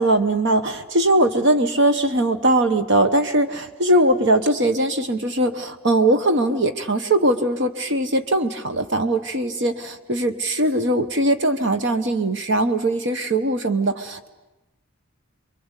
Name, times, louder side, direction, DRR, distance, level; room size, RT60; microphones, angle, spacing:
voice 1, 0.0-14.3, right 1 dB, 55° right, 8 dB, 1.1 m, -20 dB
28.0 x 23.0 x 8.3 m, 1.0 s
head